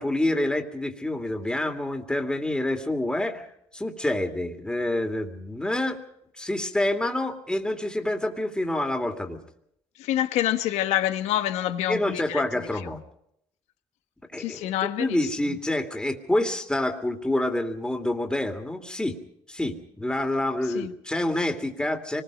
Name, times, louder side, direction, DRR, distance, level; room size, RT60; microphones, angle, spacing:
voice 1, 0.0-3.5 3.7-6.0 6.4-9.4 11.9-13.0 14.3-19.2 19.5-22.2, left 1 dB, 10° left, 5 dB, 2.7 m, -27 dB
voice 2, 10.0-13.0 14.4-15.2 20.7-20.9, left 12 dB, 85° left, 10 dB, 1.3 m, -27 dB
25.5 x 20.5 x 5.2 m, 0.75 s
supercardioid pair, 75°, 11 cm